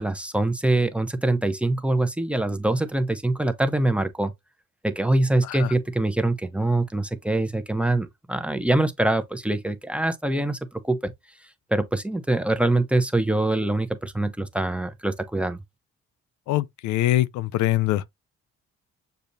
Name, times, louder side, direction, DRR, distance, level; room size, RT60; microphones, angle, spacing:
voice 1, 0.0-4.3 4.8-10.6 10.8-11.1 11.7-15.6, right 2 dB, 5° right, 0.7 m, -24 dB
voice 2, 16.5-18.0, left 15 dB, 80° left, 0.5 m, -23 dB
6.8 x 2.8 x 2.6 m
cardioid pair, 90°, 29 cm